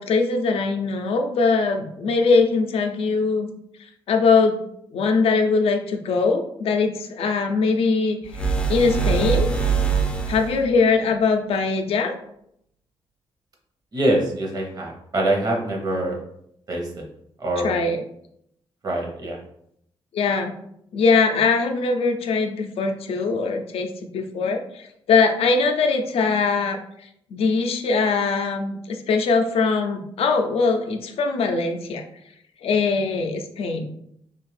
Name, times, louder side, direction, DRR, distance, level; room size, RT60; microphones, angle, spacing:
voice 1, 0.0-3.5 4.1-4.6 4.9-9.5 10.3-12.1 17.6-18.0 20.1-20.5 20.9-32.0 32.6-33.9, left 4 dB, 80° left, 5 dB, 0.4 m, -21 dB
sound 1, 8.3-10.7, right 6 dB, 10° left, 0.4 m, -23 dB
voice 2, 13.9-16.2 16.7-16.9 17.4-17.8 18.8-19.4, right 1 dB, 40° right, -1 dB, 0.7 m, -24 dB
2.6 x 2.3 x 3.2 m, 0.74 s
wide cardioid pair, 125°, 10 cm